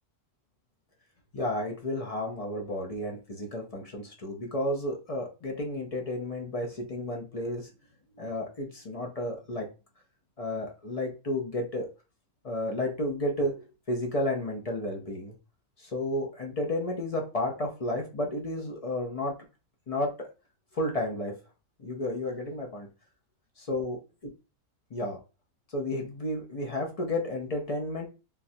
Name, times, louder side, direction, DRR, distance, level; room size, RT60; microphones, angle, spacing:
voice 1, 1.3-7.7 8.1-9.7 10.4-11.9 12.4-15.3 15.8-19.3 19.9-20.3 20.7-21.3 21.8-22.9 23.6-24.0 24.9-25.2 25.7-28.1, left 1 dB, 50° left, 0 dB, 0.4 m, -32 dB
3.7 x 2.4 x 2.6 m, 0.31 s
omnidirectional pair, 1.5 m